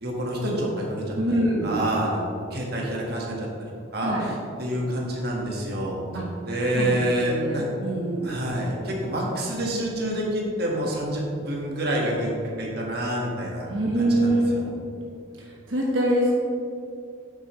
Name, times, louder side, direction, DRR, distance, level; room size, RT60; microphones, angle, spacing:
voice 1, 0.0-2.2 2.5-3.5 3.9-6.0 6.4-7.7 8.2-13.7 13.9-14.7, right 1 dB, 55° right, -2 dB, 1.7 m, -27 dB
voice 2, 1.1-1.7 4.0-4.3 6.1-6.3 6.7-8.4 13.7-14.7 15.4-16.3, right 1 dB, 80° right, -3 dB, 1.3 m, -25 dB
9.6 x 8.1 x 3.2 m, 2.5 s
head